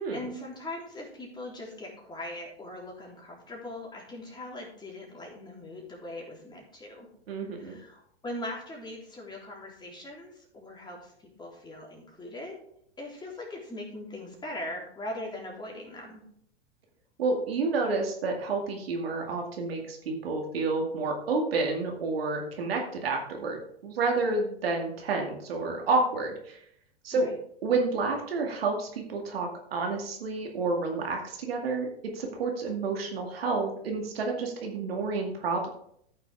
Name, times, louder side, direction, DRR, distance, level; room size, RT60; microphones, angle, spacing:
voice 1, 0.0-7.1 7.5-12.6 13.0-16.2 27.1-27.4, left 1 dB, 15° left, -2 dB, 3.4 m, -40 dB
voice 2, 7.3-7.7 17.2-26.6 27.0-27.3 27.6-31.9 32.1-35.7, right 3 dB, 65° right, 1 dB, 2.2 m, -29 dB
14.0 x 6.6 x 3.5 m, 0.69 s
figure-of-eight pair, 100°, 32 cm